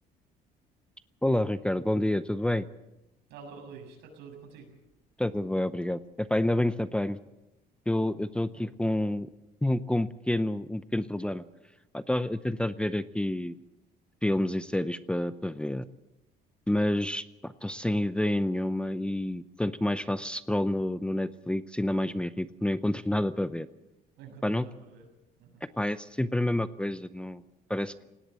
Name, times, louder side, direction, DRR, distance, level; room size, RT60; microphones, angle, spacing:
voice 1, 1.2-2.7 5.2-7.2 7.9-9.3 9.6-11.4 11.9-13.6 14.2-15.8 16.7-23.7 24.4-24.7 25.8-27.4 27.7-28.1, left 1 dB, 5° left, 14 dB, 0.6 m, -28 dB
voice 2, 3.3-4.7 24.2-25.1 25.4-25.6, right 5 dB, 85° right, 3 dB, 7.0 m, -47 dB
20.0 x 17.5 x 7.5 m, 0.96 s
cardioid pair, 110°, 17 cm